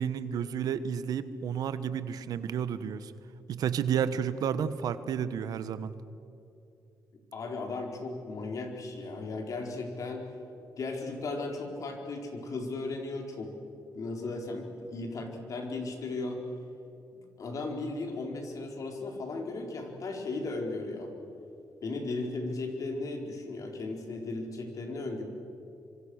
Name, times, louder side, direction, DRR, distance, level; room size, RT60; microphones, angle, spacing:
voice 1, 0.0-3.1 3.5-5.9, right 8 dB, 75° right, 13 dB, 1.2 m, -31 dB
voice 2, 7.3-10.2 10.8-13.5 13.9-16.4 17.1-21.1 21.8-25.2, left 3 dB, 60° left, 2 dB, 4.7 m, -36 dB
26.0 x 25.0 x 6.6 m, 2.7 s
cardioid pair, 85°, 6 cm